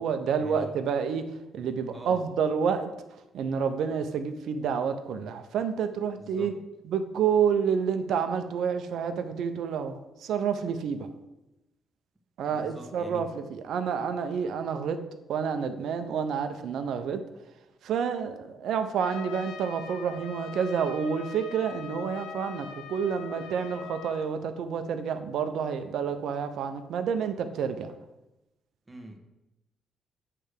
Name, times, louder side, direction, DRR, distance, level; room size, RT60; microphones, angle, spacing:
voice 1, 0.0-2.9 3.3-6.5 6.9-11.1 12.4-15.0 15.3-17.2 17.8-27.9, right 7 dB, 75° right, 8 dB, 0.7 m, -29 dB
voice 2, 1.8-2.3 6.2-6.5 12.5-13.2 28.9-29.2, right 1 dB, 15° right, 3 dB, 1.5 m, -44 dB
Trumpet, 19.0-24.3, left 7 dB, 90° left, 0.6 m, -42 dB
8.5 x 3.3 x 6.6 m, 0.96 s
cardioid pair, 90°, 0 cm